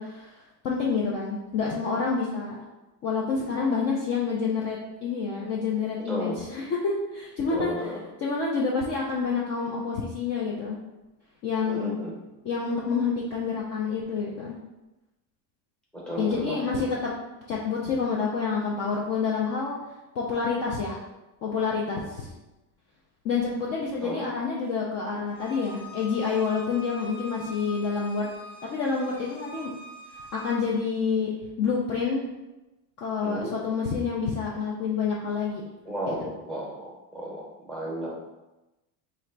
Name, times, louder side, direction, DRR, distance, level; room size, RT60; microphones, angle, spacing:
voice 1, 0.0-2.6 3.0-7.7 8.2-10.8 11.4-11.9 12.4-14.5 16.2-17.1 17.5-19.8 20.1-21.0 21.4-22.3 23.2-28.3 28.6-29.7 30.3-31.3 31.6-32.3 33.0-35.6 36.1-36.3, left 5 dB, 35° left, -4 dB, 0.4 m, -28 dB
voice 2, 6.1-6.4 7.5-8.0 11.7-12.1 15.9-16.9 24.0-24.2 33.2-33.5 35.9-38.2, right 1 dB, ahead, -5 dB, 0.8 m, -34 dB
Bowed string instrument, 25.3-30.6, left 1 dB, 85° left, 1.0 m, -44 dB
3.0 x 2.5 x 4.3 m, 1.0 s
cardioid pair, 160°, 43 cm